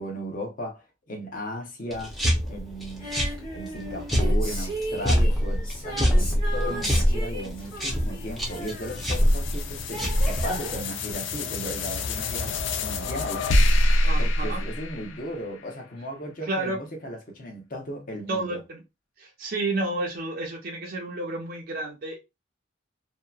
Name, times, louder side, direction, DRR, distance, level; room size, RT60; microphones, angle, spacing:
voice 1, 0.0-2.2 2.5-3.1 3.5-13.5 14.2-18.6, equal, 40° left, 0.8 m, -36 dB
sound 1, 1.9-10.8, equal, ahead, 0.6 m, -25 dB
Female singing, 3.0-10.0 11.1-11.2, equal, 25° left, 1.1 m, -37 dB
sound 2, 7.1-15.7, left 1 dB, 65° left, 0.4 m, -27 dB
voice 2, 14.0-14.6 16.4-16.8 18.3-18.8 19.2-22.2, right 2 dB, 45° right, 0.5 m, -31 dB
2.7 x 2.1 x 2.3 m
head